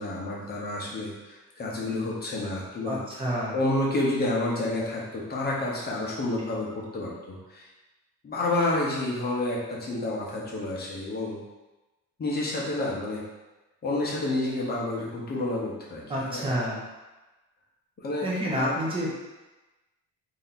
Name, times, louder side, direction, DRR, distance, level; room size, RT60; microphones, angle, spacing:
voice 1, 0.0-3.0 3.5-7.7 8.2-11.4 12.2-13.2 13.8-16.5 18.0-18.3 18.5-18.8, left 2 dB, 30° left, -5 dB, 0.9 m, -29 dB
voice 2, 2.8-3.5 16.1-16.8 18.2-19.1, equal, 15° right, -6 dB, 0.9 m, -29 dB
3.4 x 2.8 x 4.1 m, 1.1 s
cardioid pair, 170°, 34 cm